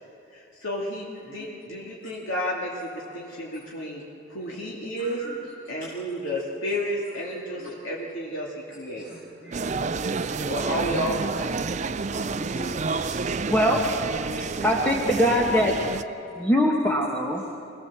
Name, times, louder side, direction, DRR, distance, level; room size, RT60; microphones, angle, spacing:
voice 1, 0.3-4.0 4.3-5.2 5.7-9.2 10.5-11.6, equal, 75° left, -4 dB, 2.5 m, -31 dB
voice 2, 1.3-2.1 3.3-3.4 5.0-5.3 5.6-5.9 6.6-7.3 7.6-7.7 8.7-10.7 11.8-14.7 15.2-15.8 16.2-16.4 17.4-17.5, left 1 dB, 45° left, -8 dB, 5.9 m, -45 dB
sound 1, 9.5-16.0, right 4 dB, 35° right, 0.4 m, -29 dB
voice 3, 13.5-13.8 14.6-15.7 16.3-17.4, equal, 10° left, -2 dB, 1.4 m, -22 dB
25.5 x 19.0 x 7.4 m, 2.7 s
head